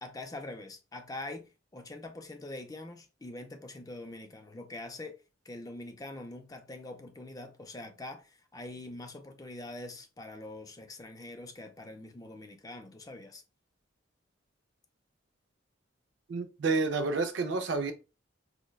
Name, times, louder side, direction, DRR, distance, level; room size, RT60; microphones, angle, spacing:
voice 1, 0.0-13.4, left 2 dB, 20° left, 0.4 m, -44 dB
voice 2, 16.3-17.9, right 3 dB, 60° right, 0.4 m, -29 dB
4.8 x 2.1 x 2.2 m
head